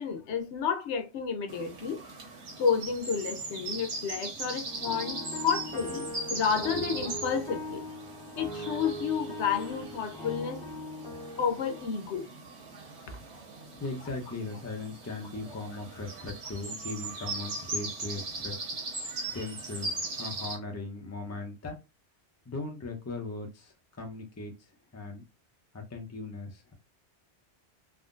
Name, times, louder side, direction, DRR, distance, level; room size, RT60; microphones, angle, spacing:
voice 1, 0.0-2.0 2.6-7.8 8.4-10.6 11.4-12.3, left 6 dB, 80° left, 1.0 m, -31 dB
sound 1, 1.5-20.6, right 2 dB, 75° right, 1.3 m, -39 dB
sound 2, 4.6-11.9, equal, 55° left, 1.5 m, -40 dB
voice 2, 13.8-18.7 19.3-21.7 22.5-25.2 25.7-26.7, left 3 dB, 20° left, 0.5 m, -39 dB
3.6 x 2.1 x 2.5 m
omnidirectional pair, 1.2 m